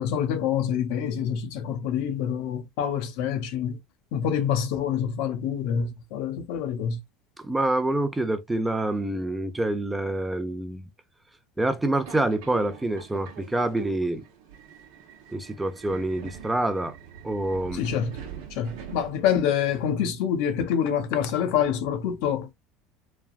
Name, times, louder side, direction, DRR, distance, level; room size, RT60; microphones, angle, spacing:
voice 1, 0.0-3.8 4.1-7.0 17.7-18.2 18.5-22.5, left 8 dB, 70° left, 0.6 m, -26 dB
voice 2, 7.4-10.9 11.6-14.2 15.3-17.0 17.2-17.9, right 1 dB, 10° right, 0.5 m, -26 dB
Subway metro underground, 12.0-19.5, right 7 dB, 75° right, 0.8 m, -43 dB
3.2 x 2.2 x 2.4 m
hypercardioid pair, 90°, 0 cm